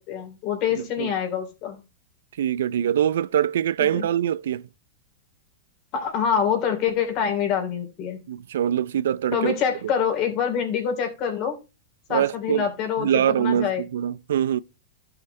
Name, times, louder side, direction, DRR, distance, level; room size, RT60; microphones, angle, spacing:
voice 1, 0.1-1.8 3.9-4.1 5.9-8.2 9.3-11.6 12.1-13.8, left 7 dB, 40° left, 2.9 m, -25 dB
voice 2, 0.7-1.1 2.4-4.6 8.3-9.5 9.8-9.9 12.1-12.7 13.0-14.6, right 10 dB, 80° right, 0.5 m, -24 dB
12.5 x 5.8 x 3.2 m
hypercardioid pair, 135°, 0 cm